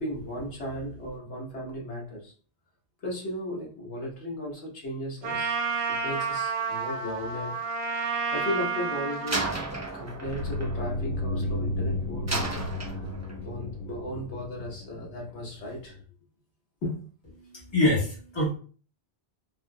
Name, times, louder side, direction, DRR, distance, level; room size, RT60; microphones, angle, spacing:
voice 1, 0.0-2.3 3.0-5.5 5.9-7.6 8.3-9.5 9.9-12.7 13.4-16.0 16.8-17.0, left 1 dB, 80° left, 1.5 m, -35 dB
Trumpet, 5.2-9.6, right 5 dB, 65° right, 0.9 m, -30 dB
Slam, 9.3-11.7 12.3-13.5, right 2 dB, 25° right, 0.4 m, -34 dB
sound 1, 10.3-16.0, left 1 dB, 60° left, 0.7 m, -33 dB
voice 2, 17.4-18.5, left 1 dB, 25° left, 1.5 m, -25 dB
4.2 x 2.7 x 2.3 m
omnidirectional pair, 1.1 m